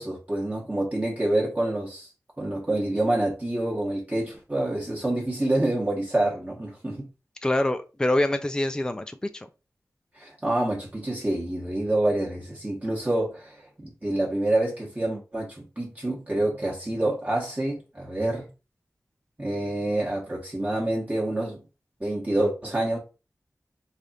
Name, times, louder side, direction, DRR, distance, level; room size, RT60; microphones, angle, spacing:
voice 1, 0.0-2.1 2.4-7.1 10.1-18.5 19.4-21.6 22.0-23.0, right 1 dB, 25° right, 1.0 m, -27 dB
voice 2, 7.4-9.5, left 1 dB, 10° left, 0.3 m, -25 dB
3.3 x 2.4 x 4.0 m
wide cardioid pair, 95°, 6 cm